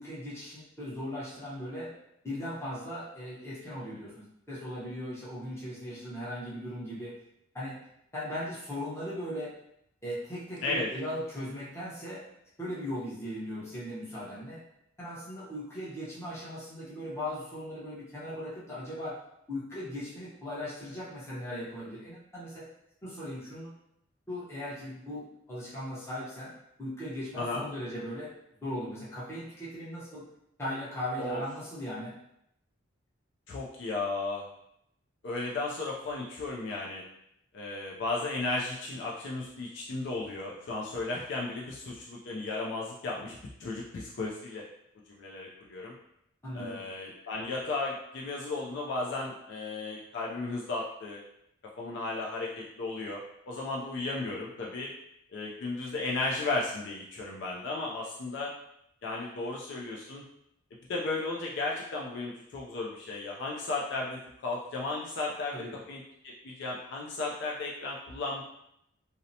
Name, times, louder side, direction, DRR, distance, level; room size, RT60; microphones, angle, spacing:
voice 1, 0.0-1.9 2.2-7.2 7.5-7.8 8.1-9.5 10.0-12.3 12.6-14.6 15.0-19.2 19.5-22.6 23.0-23.7 24.3-26.5 26.8-28.3 28.6-30.2 30.6-32.2 46.4-46.8 65.5-65.8, left 1 dB, 15° left, -9 dB, 0.8 m, -38 dB
voice 2, 27.4-27.7 31.2-31.4 33.5-34.5 35.2-37.0 37.5-44.7 45.1-45.9 46.5-51.2 51.8-53.2 53.5-54.9 55.3-58.5 59.0-60.2 60.9-65.6 65.9-68.4, left 3 dB, 55° left, -3 dB, 0.3 m, -34 dB
2.7 x 2.0 x 2.6 m, 0.77 s
head